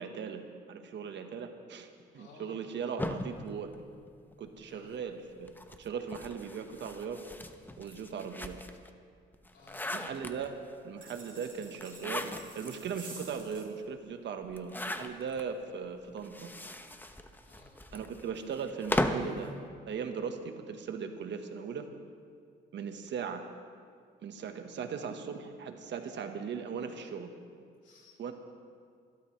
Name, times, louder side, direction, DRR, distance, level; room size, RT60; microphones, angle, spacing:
voice 1, 0.0-1.9 2.1-3.7 4.4-5.5 5.8-7.2 7.8-8.6 9.9-10.6 10.8-16.5 17.9-19.6 19.9-21.9 22.7-23.5 24.2-27.3 28.2-28.3, right 6 dB, 65° right, 6 dB, 1.3 m, -38 dB
voice 2, 2.1-2.6 4.6-5.0 9.5-10.0 17.4-17.8 27.8-28.2, left 3 dB, 65° left, -3 dB, 3.6 m, -57 dB
sound 1, 3.0-4.6 5.4-8.9 9.3-10.7 11.7-12.7 13.2-13.3 13.5-13.6 14.5-15.4 16.2-19.4, left 1 dB, 10° left, 0.9 m, -37 dB
sound 2, 11.0-13.7, right 3 dB, 25° right, 5.0 m, -50 dB
25.5 x 13.0 x 3.3 m, 2.2 s
cardioid pair, 90°, 20 cm